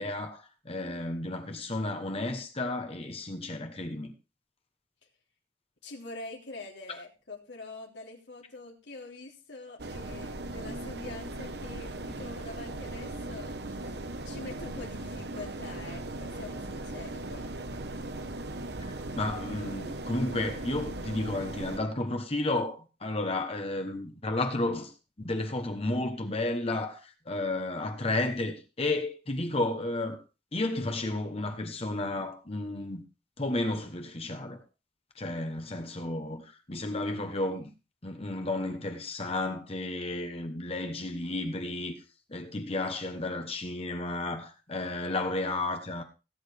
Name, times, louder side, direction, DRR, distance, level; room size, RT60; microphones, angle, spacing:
voice 1, 0.0-4.1 19.1-30.2 30.5-33.0 33.4-34.6 35.1-37.7 38.0-42.0 42.3-46.0, left 2 dB, 35° left, 1.2 m, -32 dB
voice 2, 5.8-14.0 14.2-17.6, left 2 dB, 85° left, 3.1 m, -45 dB
sound 1, 9.8-21.8, right 2 dB, 65° right, 1.2 m, -38 dB
18.0 x 8.9 x 3.5 m
head